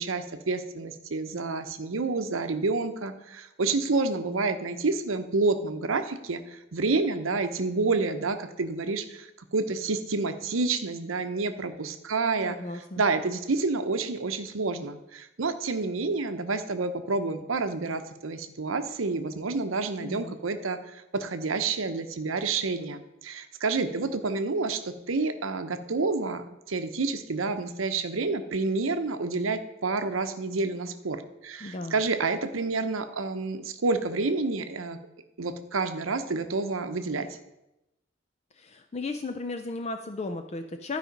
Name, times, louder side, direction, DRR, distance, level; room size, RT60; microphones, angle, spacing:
voice 1, 0.0-9.3 9.5-12.6 13.0-35.0 35.4-37.3, right 3 dB, 80° right, 8 dB, 0.8 m, -29 dB
voice 2, 12.4-13.0 20.0-20.4 31.6-32.0 38.5-41.0, left 3 dB, 30° left, 6 dB, 0.4 m, -35 dB
12.0 x 5.0 x 5.2 m, 0.91 s
head